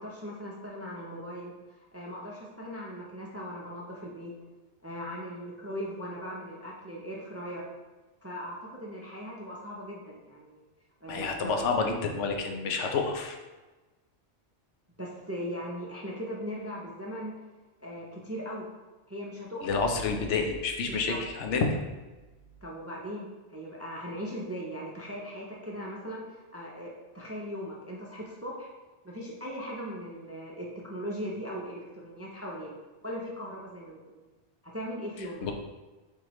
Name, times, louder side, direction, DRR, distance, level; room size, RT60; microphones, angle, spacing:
voice 1, 0.0-1.5 1.9-4.3 4.8-7.7 8.2-10.7 11.0-11.6 15.0-17.3 17.8-18.7 19.1-19.6 20.9-21.2 22.6-28.7 29.0-32.7 33.0-34.2 34.6-35.4, equal, 20° right, -3 dB, 0.3 m, -39 dB
voice 2, 11.1-13.4 19.6-21.8 35.4-35.5, left 4 dB, 85° left, 3 dB, 1.0 m, -29 dB
4.6 x 3.7 x 3.0 m, 1.2 s
omnidirectional pair, 1.2 m